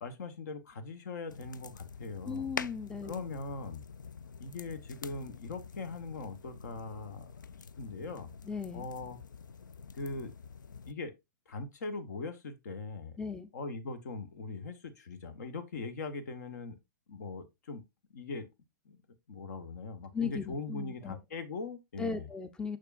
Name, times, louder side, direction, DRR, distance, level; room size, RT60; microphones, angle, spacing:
voice 1, 0.0-2.5 3.0-3.8 4.4-7.3 7.8-8.3 8.7-9.2 9.9-10.3 10.9-11.1 11.5-13.2 13.5-16.8 17.1-17.8 18.1-18.5 18.8-19.0 19.3-22.3, left 3 dB, 60° left, 1.1 m, -41 dB
sound 1, 1.3-10.9, left 6 dB, 80° left, 0.4 m, -46 dB
voice 2, 2.2-3.1 8.4-8.9 13.2-13.5 20.1-21.2 22.0-22.8, left 5 dB, 10° left, 0.5 m, -37 dB
6.6 x 6.2 x 2.4 m
figure-of-eight pair, 100°, 10 cm